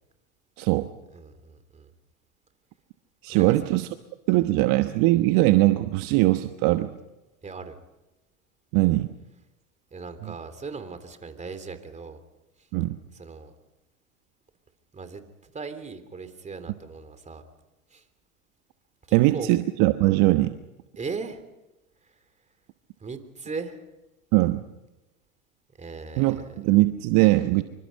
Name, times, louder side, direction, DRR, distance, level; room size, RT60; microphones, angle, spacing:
voice 1, 1.1-1.9 3.3-3.5 4.3-4.4 7.4-7.8 9.9-12.2 13.1-13.5 14.9-17.4 17.9-18.0 19.1-19.5 21.0-21.4 23.0-23.8 25.8-26.6, right 4 dB, 15° right, 10 dB, 3.4 m, -38 dB
voice 2, 3.2-3.9 4.3-6.9 8.7-9.1 12.7-13.0 19.1-20.5 24.3-24.6 26.2-27.6, right 18 dB, 50° right, 9 dB, 1.2 m, -21 dB
27.5 x 25.0 x 5.6 m, 1.0 s
hypercardioid pair, 95°, 42 cm